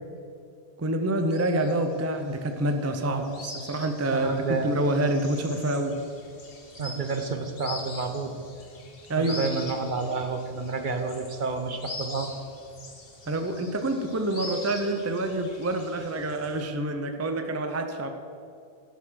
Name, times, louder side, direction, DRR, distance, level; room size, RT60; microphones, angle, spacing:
voice 1, 0.8-4.3 4.6-6.0 9.1-9.5 13.3-18.1, right 1 dB, 20° right, 6 dB, 0.5 m, -27 dB
sound 1, 1.3-16.7, left 2 dB, 60° left, 1.7 m, -43 dB
voice 2, 3.0-3.4 4.1-4.9 6.8-8.3 9.2-12.3, right 4 dB, 50° right, 6 dB, 0.9 m, -30 dB
12.5 x 5.9 x 6.3 m, 2.5 s
omnidirectional pair, 1.1 m